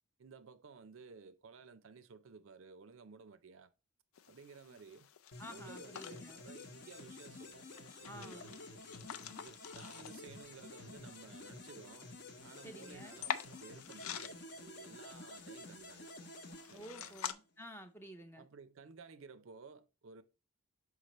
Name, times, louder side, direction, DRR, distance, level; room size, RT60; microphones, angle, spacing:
voice 1, 0.2-3.7 4.3-5.1 5.4-7.6 8.0-9.0 9.3-12.2 12.4-16.1 16.7-17.2 18.4-20.2, right 5 dB, 60° right, 0.5 m, -55 dB
sound 1, 4.1-17.3, left 8 dB, 70° left, 0.4 m, -48 dB
sound 2, 5.3-17.4, left 2 dB, 50° left, 0.9 m, -51 dB
voice 2, 5.4-6.4 8.0-8.5 12.6-13.2 16.7-18.4, equal, 10° left, 0.5 m, -51 dB
6.5 x 4.9 x 3.0 m
head